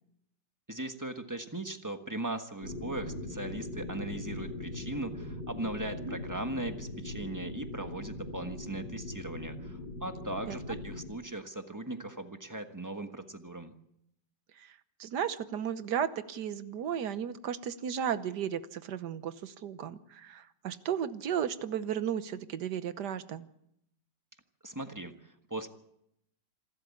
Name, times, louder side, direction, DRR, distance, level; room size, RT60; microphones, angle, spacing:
voice 1, 0.7-13.7 24.6-25.7, right 2 dB, 10° right, 7 dB, 1.2 m, -39 dB
sound 1, 2.6-11.1, left 2 dB, 80° left, 4.0 m, -40 dB
voice 2, 14.6-23.5, right 9 dB, 70° right, 13 dB, 1.5 m, -34 dB
27.0 x 12.5 x 8.5 m, 0.78 s
omnidirectional pair, 2.0 m